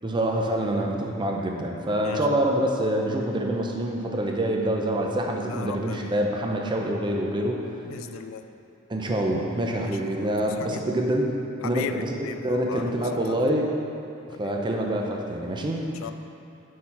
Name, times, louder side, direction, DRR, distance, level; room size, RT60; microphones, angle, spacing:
voice 1, 0.0-7.6 8.9-11.4 11.6-12.1 12.4-13.7 14.4-15.9, right 1 dB, 20° right, 0 dB, 0.6 m, -26 dB
voice 2, 2.0-2.3 5.5-6.1 7.8-8.4 9.8-10.8 11.6-13.4 14.3-14.5 16.0-16.1, left 7 dB, 70° left, 8 dB, 0.3 m, -37 dB
6.6 x 5.6 x 4.3 m, 2.7 s
head